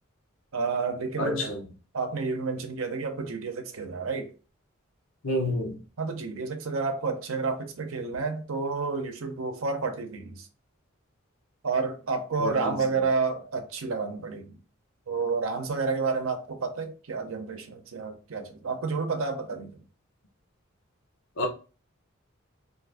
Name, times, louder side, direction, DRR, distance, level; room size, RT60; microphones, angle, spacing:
voice 1, 0.5-1.6 1.9-4.3 6.0-10.5 11.6-14.6 15.1-19.8, right 4 dB, 85° right, 0.6 m, -30 dB
voice 2, 1.2-1.6 5.2-5.8 12.4-12.8 21.4-21.5, left 1 dB, 90° left, 0.8 m, -28 dB
2.6 x 2.5 x 3.4 m
head